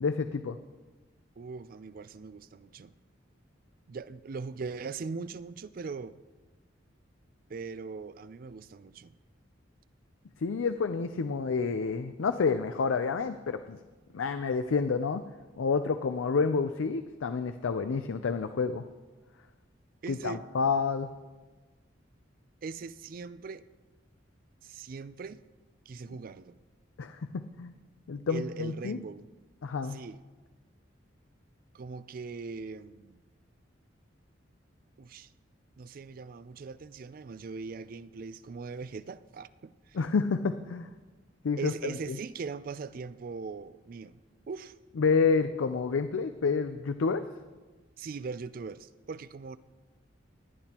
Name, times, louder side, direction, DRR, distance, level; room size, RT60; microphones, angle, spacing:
voice 1, 0.0-0.6 10.4-13.8 14.1-15.3 15.6-18.9 20.1-21.1 27.0-27.7 28.1-29.0 29.6-30.0 39.9-40.9 41.4-42.2 45.0-47.3, left 5 dB, 90° left, 0.5 m, -29 dB
voice 2, 1.4-2.9 3.9-6.2 7.5-9.1 20.0-20.4 22.6-23.6 24.6-25.4 25.9-26.6 28.3-29.3 29.9-30.2 31.7-33.2 35.0-35.3 35.8-40.0 41.6-44.2 44.5-44.8 48.0-49.6, right 4 dB, 45° right, 0.4 m, -40 dB
18.5 x 10.5 x 2.9 m
head